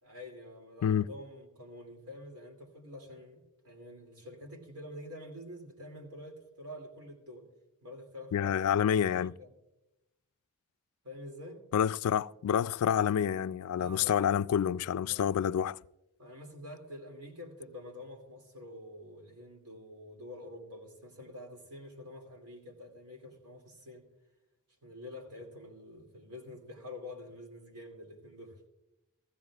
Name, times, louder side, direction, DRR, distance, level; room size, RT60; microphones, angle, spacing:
voice 1, 0.0-7.5 7.8-8.5 8.9-9.5 11.0-11.6 13.8-14.4 15.0-15.3 16.2-24.1 24.8-28.7, left 1 dB, 80° right, 2.6 m, -47 dB
voice 2, 8.3-9.3 11.7-15.8, left 8 dB, 70° left, 0.3 m, -28 dB
15.5 x 15.5 x 2.4 m
head